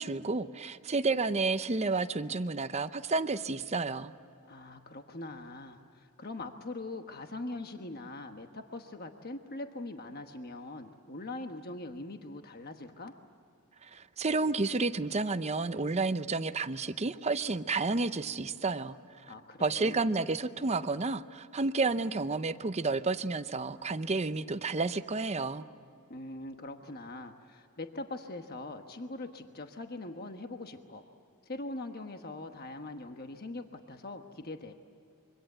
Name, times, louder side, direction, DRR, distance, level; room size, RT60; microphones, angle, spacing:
voice 1, 0.0-4.1 13.8-19.0 19.6-25.6, right 3 dB, 30° right, 12 dB, 0.7 m, -31 dB
voice 2, 4.4-13.2 19.3-20.0 26.1-31.0 31.5-34.7, left 2 dB, 45° left, 6 dB, 1.2 m, -42 dB
26.0 x 24.5 x 7.9 m, 2.6 s
head